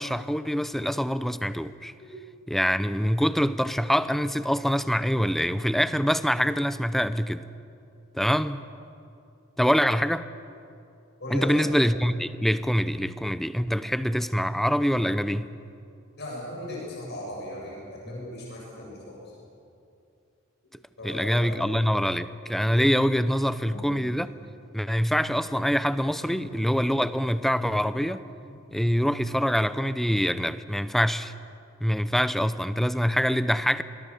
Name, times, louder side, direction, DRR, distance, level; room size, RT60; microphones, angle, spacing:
voice 1, 0.0-1.9 2.5-7.4 8.1-8.6 9.6-10.3 11.3-15.5 18.1-18.2 21.0-24.3 24.7-28.2 28.7-31.3 31.8-33.8, equal, ahead, 0.6 m, -25 dB
voice 2, 11.2-11.7 14.5-14.6 16.2-19.2 21.0-21.8 22.6-22.8 23.6-24.0 26.2-26.5 28.4-28.6, left 1 dB, 55° left, 7.7 m, -38 dB
26.5 x 21.5 x 7.2 m
head